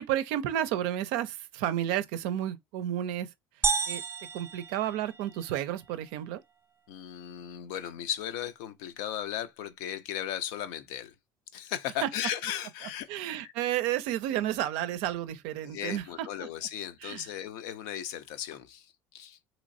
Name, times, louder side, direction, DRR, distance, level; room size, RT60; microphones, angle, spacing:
voice 1, 0.0-3.3 3.9-4.0 4.3-6.4 12.0-12.1 13.1-16.5 17.0-17.3, right 12 dB, 75° right, 0.4 m, -31 dB
sound 1, 3.6-5.6, right 5 dB, 25° right, 0.6 m, -32 dB
voice 2, 6.9-11.1 11.5-13.1 13.4-13.5 15.6-19.4, left 10 dB, 75° left, 0.5 m, -36 dB
3.1 x 2.9 x 2.6 m
hypercardioid pair, 75°, 10 cm